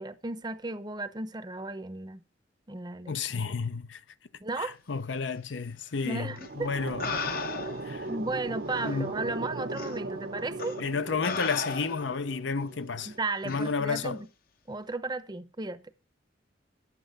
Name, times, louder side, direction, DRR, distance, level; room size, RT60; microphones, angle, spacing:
voice 1, 0.0-2.2 2.7-3.5 4.4-4.7 6.0-6.7 8.1-10.8 13.0-14.3 14.7-15.8, right 2 dB, 20° right, 0.7 m, -35 dB
voice 2, 3.1-4.0 4.6-7.1 7.8-8.1 8.8-9.1 10.8-13.1 13.4-14.2, left 4 dB, 75° left, 0.7 m, -31 dB
sound 1, 6.0-13.2, right 2 dB, 55° right, 0.8 m, -38 dB
sound 2, 6.4-6.5 7.0-7.9 8.8-8.9 9.8-9.9 10.6-10.8 11.2-12.2 13.5-13.7, left 5 dB, 50° left, 0.8 m, -35 dB
10.0 x 8.4 x 5.3 m
head